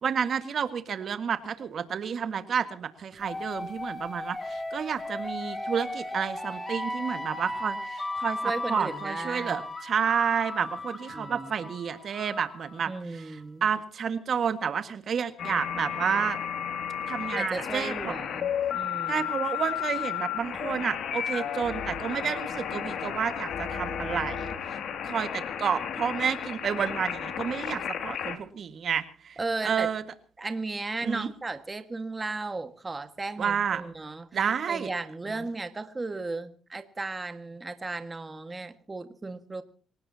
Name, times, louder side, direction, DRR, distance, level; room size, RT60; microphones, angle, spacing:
voice 1, 0.0-16.4 17.1-18.1 19.1-24.8 25.0-30.0 31.0-31.3 33.4-33.8 34.3-34.9, right 7 dB, 55° right, 9 dB, 1.7 m, -30 dB
sound 1, 3.2-12.9, left 1 dB, 20° left, 4.0 m, -36 dB
voice 2, 8.4-9.6 11.1-11.5 12.9-13.7 17.3-19.3 29.4-29.9 30.4-39.6, right 3 dB, 25° right, 8 dB, 1.7 m, -35 dB
sound 2, 15.4-28.4, left 8 dB, 70° left, 2.5 m, -33 dB
27.0 x 18.0 x 2.8 m, 0.40 s
cardioid pair, 90°, 0 cm